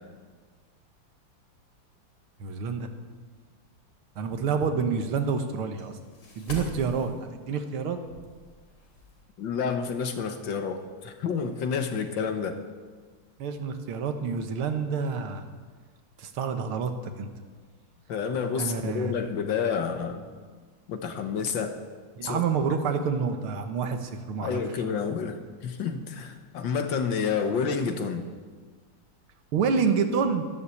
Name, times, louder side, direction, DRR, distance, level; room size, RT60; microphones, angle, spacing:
voice 1, 2.4-2.9 4.2-6.0 6.4-8.0 13.4-15.5 16.2-17.3 18.6-19.1 22.2-24.6 29.5-30.5, right 5 dB, 80° right, 7 dB, 2.1 m, -28 dB
sound 1, 4.2-9.2, left 1 dB, 80° left, 4.5 m, -46 dB
voice 2, 9.4-12.6 18.1-20.3 20.9-21.8 22.2-22.4 24.4-28.2, left 6 dB, 65° left, 7 dB, 1.7 m, -29 dB
12.5 x 11.5 x 8.4 m, 1.5 s
omnidirectional pair, 2.3 m